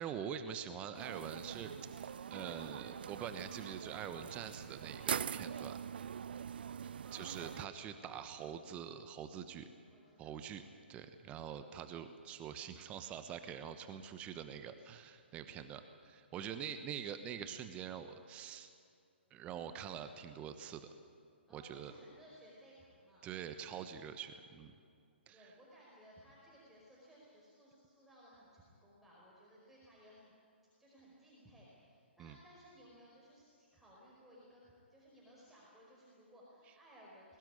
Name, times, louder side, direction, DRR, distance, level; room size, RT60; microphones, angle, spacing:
voice 1, 0.0-5.8 7.1-9.7 10.2-10.6 10.9-18.7 19.3-20.9 21.5-21.9 23.2-24.7 25.3-25.5 32.2-32.4, right 8 dB, 20° right, 9 dB, 1.1 m, -45 dB
sound 1, 0.9-7.7, right 8 dB, 55° right, 0.5 m, -43 dB
voice 2, 7.0-8.1 9.9-10.3 21.5-23.3 25.3-30.3 30.6-37.4, equal, ahead, -7 dB, 4.9 m, -60 dB
23.0 x 18.5 x 9.8 m, 2.5 s
figure-of-eight pair, 125°, 6 cm